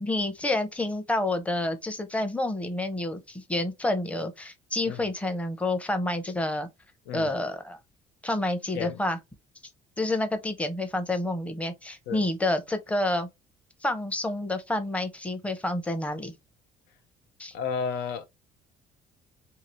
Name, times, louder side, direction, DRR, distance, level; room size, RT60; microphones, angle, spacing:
voice 1, 0.0-6.7 7.1-7.8 8.2-9.2 10.0-13.3 13.8-16.3 17.4-17.5, left 1 dB, 10° left, 0.7 m, -29 dB
voice 2, 17.5-18.3, left 6 dB, 85° left, 0.6 m, -32 dB
2.8 x 2.8 x 3.1 m
cardioid pair, 110°, 17 cm